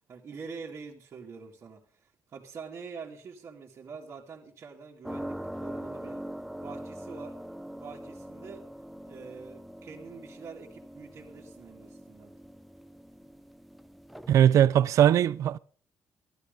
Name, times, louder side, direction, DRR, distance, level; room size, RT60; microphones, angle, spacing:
voice 1, 0.1-6.2 6.6-7.4 7.8-8.7 9.1-12.3, right 5 dB, 45° right, 2.2 m, -45 dB
sound 1, 5.0-14.4, equal, ahead, 0.7 m, -42 dB
voice 2, 14.3-15.6, right 10 dB, 65° right, 0.6 m, -20 dB
14.5 x 12.0 x 5.2 m
cardioid pair, 140°, 6 cm